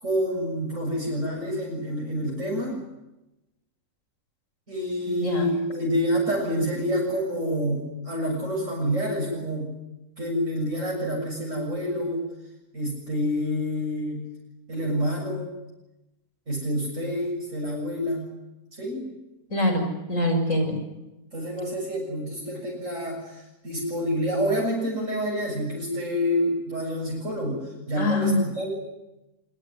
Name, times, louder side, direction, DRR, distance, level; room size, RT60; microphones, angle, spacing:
voice 1, 0.0-2.8 4.7-9.7 10.2-12.2 12.7-14.2 14.7-15.5 16.5-18.3 18.8-19.0 21.3-28.7, equal, 55° right, -2 dB, 7.5 m, -28 dB
voice 2, 5.1-5.5 19.5-20.8 28.0-28.4, left 1 dB, 60° left, 5 dB, 6.9 m, -24 dB
26.5 x 21.0 x 9.9 m, 0.97 s
omnidirectional pair, 1.6 m